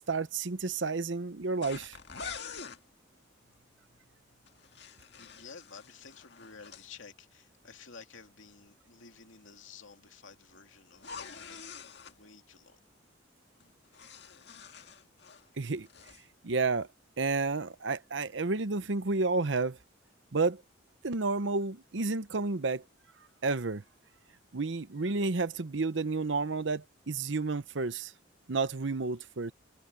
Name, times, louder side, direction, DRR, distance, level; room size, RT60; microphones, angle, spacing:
voice 1, 0.0-2.0 15.6-15.9 16.4-16.9 17.2-19.8 20.3-20.6 21.0-22.8 23.4-23.8 24.5-28.1 28.5-29.5, right 3 dB, 70° right, 0.8 m, -31 dB
sound 1, 1.6-2.8 4.5-6.9 10.9-12.2 13.6-15.5 15.8-16.2, left 5 dB, 60° left, 1.9 m, -46 dB
voice 2, 3.4-12.8, left 5 dB, 80° left, 2.4 m, -53 dB
head